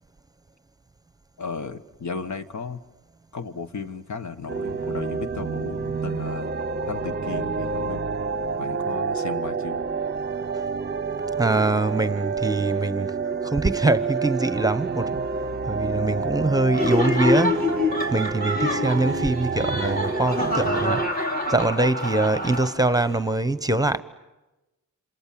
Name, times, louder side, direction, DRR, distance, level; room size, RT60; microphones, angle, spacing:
voice 1, 1.4-2.8 3.3-6.5 6.9-8.0 8.6-9.8 18.7-18.8, left 5 dB, 65° left, 1.6 m, -35 dB
sound 1, 4.5-21.1, right 4 dB, 35° right, 0.9 m, -28 dB
voice 2, 11.3-17.6 18.1-21.1 21.5-24.0, right 2 dB, 10° right, 1.1 m, -23 dB
Laughter, 16.7-23.1, left 2 dB, 30° left, 3.6 m, -26 dB
28.5 x 26.5 x 7.6 m
cardioid pair, 95°, 31 cm